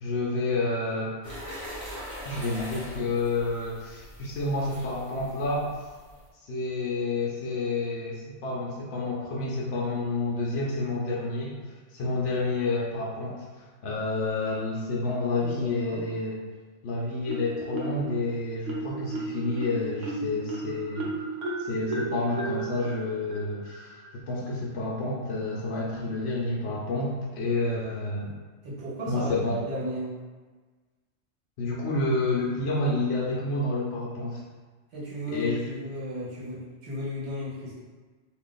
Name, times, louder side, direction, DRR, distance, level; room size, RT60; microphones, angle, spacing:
voice 1, 0.0-1.1 2.2-5.7 6.4-11.5 11.9-13.4 13.8-16.4 16.8-21.1 21.6-23.9 24.3-28.3 29.1-29.6 31.6-34.4 35.3-35.6, left 2 dB, 65° left, -5 dB, 0.8 m, -29 dB
sound 1, 1.2-6.3, equal, 30° right, 1.0 m, -42 dB
voice 2, 15.4-16.1 28.6-30.1 34.9-37.8, equal, 65° right, -7 dB, 1.2 m, -35 dB
Marimba xylophone, 17.3-18.2 18.6-24.2, right 3 dB, 85° right, 1.0 m, -34 dB
2.6 x 2.4 x 3.7 m, 1.4 s
omnidirectional pair, 1.2 m